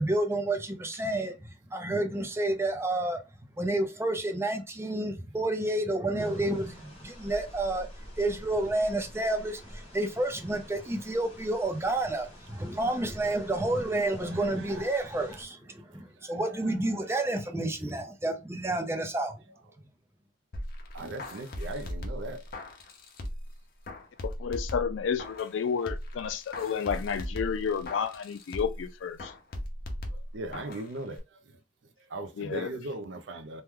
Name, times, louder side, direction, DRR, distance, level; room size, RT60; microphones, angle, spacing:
voice 1, 0.0-3.2 3.6-7.9 8.2-19.4, right 2 dB, 15° right, 0.5 m, -30 dB
sound 1, 6.2-15.4, equal, 30° left, 1.0 m, -49 dB
voice 2, 14.3-15.0 16.2-16.7 17.0-17.2 20.9-22.4 30.1-31.6 32.1-33.6, right 2 dB, 75° right, 0.5 m, -39 dB
sound 2, 20.5-23.5 23.9-25.6 25.9-28.9 29.2-30.9 31.2-31.3, left 1 dB, 50° left, 0.7 m, -38 dB
voice 3, 24.2-29.3 32.4-32.7, left 6 dB, 80° left, 0.3 m, -31 dB
3.0 x 2.2 x 3.5 m
head